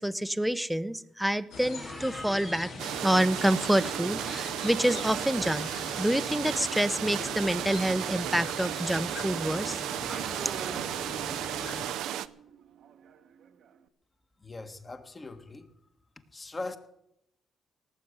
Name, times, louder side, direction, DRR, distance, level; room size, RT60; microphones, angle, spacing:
voice 1, 0.0-5.7 6.0-9.8 10.1-10.5, right 1 dB, 5° right, 0.7 m, -28 dB
sound 1, 1.5-11.9, left 3 dB, 80° left, 2.9 m, -42 dB
sound 2, 2.8-12.3, right 12 dB, 90° right, 0.5 m, -34 dB
Motorcycle / Engine, 8.7-13.8, right 8 dB, 70° right, 1.0 m, -46 dB
voice 2, 14.4-15.7 16.3-16.8, left 2 dB, 25° left, 1.5 m, -40 dB
18.0 x 7.5 x 8.1 m
cardioid pair, 90°, 0 cm